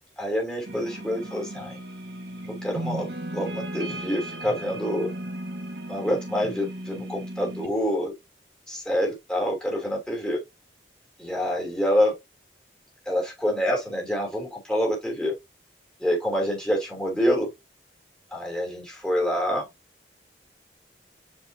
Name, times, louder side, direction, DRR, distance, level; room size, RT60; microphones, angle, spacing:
voice 1, 0.2-1.8 2.6-5.1 5.9-8.1 8.7-10.4 11.2-12.1 13.0-15.3 16.0-17.5 18.3-19.7, equal, 5° left, 2.9 m, -27 dB
sound 1, 0.6-7.7, right 1 dB, 65° right, 1.6 m, -35 dB
7.8 x 4.8 x 2.7 m
head